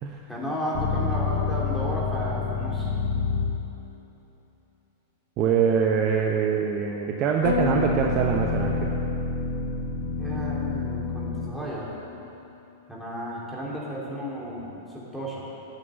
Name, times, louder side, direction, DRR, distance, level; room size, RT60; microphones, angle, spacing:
voice 1, 0.3-2.9 10.2-11.9 12.9-15.4, equal, ahead, -7 dB, 3.4 m, -33 dB
sound 1, 0.7-3.9 7.4-12.0, left 4 dB, 55° left, 1.2 m, -28 dB
voice 2, 5.4-8.9, right 6 dB, 35° right, 1 dB, 0.9 m, -24 dB
10.0 x 8.7 x 8.0 m, 3.0 s
figure-of-eight pair, 95°, 0 cm